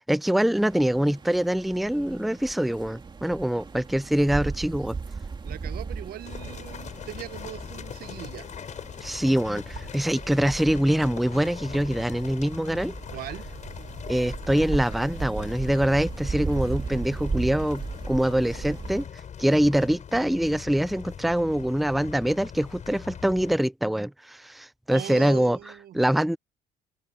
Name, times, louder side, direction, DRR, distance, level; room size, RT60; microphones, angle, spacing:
voice 1, 0.0-5.0 9.0-12.9 14.1-19.1 19.4-25.6 25.9-26.4, right 1 dB, ahead, 0.7 m, -24 dB
sound 1, 0.6-19.0, right 4 dB, 25° right, 2.8 m, -37 dB
voice 2, 5.4-8.5 13.1-13.4 24.9-25.9, right 13 dB, 65° right, 1.0 m, -39 dB
sound 2, 6.3-23.6, left 8 dB, 45° left, 7.1 m, -41 dB
open air
cardioid pair, 110°, 17 cm